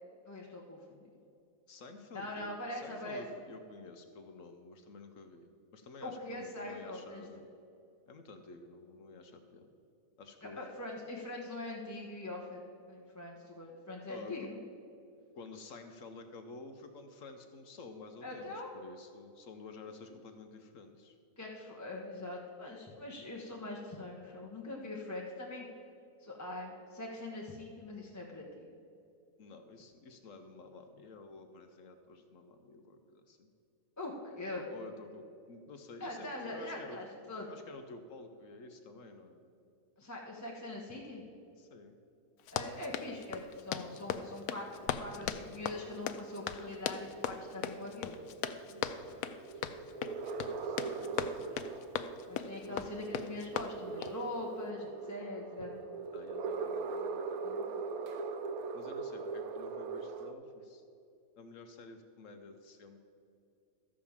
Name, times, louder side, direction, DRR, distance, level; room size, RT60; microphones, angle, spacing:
voice 1, 0.3-1.1 2.1-3.2 6.0-7.2 10.4-12.6 12.9-14.6 18.2-18.7 21.4-25.6 26.2-28.7 34.0-34.6 36.0-37.5 40.0-41.2 42.5-48.2 52.3-55.8 57.4-57.7, left 2 dB, 15° left, -2 dB, 0.9 m, -43 dB
voice 2, 1.7-7.5 8.1-9.7 10.2-10.6 14.1-14.5 15.3-21.2 29.4-33.5 34.5-37.0 37.5-39.5 41.6-42.0 48.7-49.7 50.6-51.6 52.7-52.9 56.1-57.3 58.7-60.8 61.4-63.0, left 3 dB, 65° left, 6 dB, 1.1 m, -51 dB
Run, 42.4-54.2, left 9 dB, 85° left, 1.1 m, -39 dB
sound 1, 43.0-60.3, right 4 dB, 85° right, 1.2 m, -42 dB
13.0 x 5.0 x 7.2 m, 2.5 s
omnidirectional pair, 1.5 m